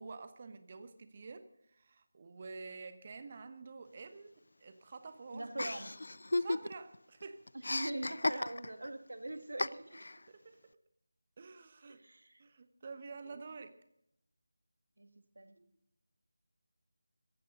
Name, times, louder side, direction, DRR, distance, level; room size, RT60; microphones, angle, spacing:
voice 1, 0.0-4.3 4.6-5.5 6.4-7.4 10.3-10.6 11.4-12.0 12.4-13.8, right 4 dB, 35° right, 1.1 m, -49 dB
voice 2, 5.3-6.0 7.5-10.1 11.9-12.4 13.3-13.4 15.0-15.6, right 1 dB, 65° right, 1.6 m, -43 dB
Chuckle chortle, 5.6-7.0 7.2-8.9 9.6-10.2, left 2 dB, 60° left, 0.4 m, -35 dB
18.0 x 15.0 x 3.9 m
figure-of-eight pair, 160°, 0 cm